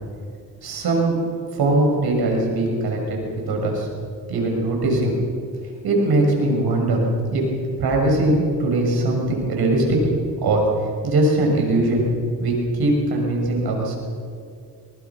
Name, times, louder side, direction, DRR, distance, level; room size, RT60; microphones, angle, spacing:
voice 1, 0.6-1.1 1.5-3.2 3.5-3.9 4.3-5.2 5.8-7.0 7.3-7.4 7.8-10.6 11.0-12.1 12.4-13.9, right 2 dB, 70° right, 0 dB, 6.7 m, -20 dB
22.5 x 20.5 x 6.3 m, 2.3 s
cardioid pair, 90°, 40 cm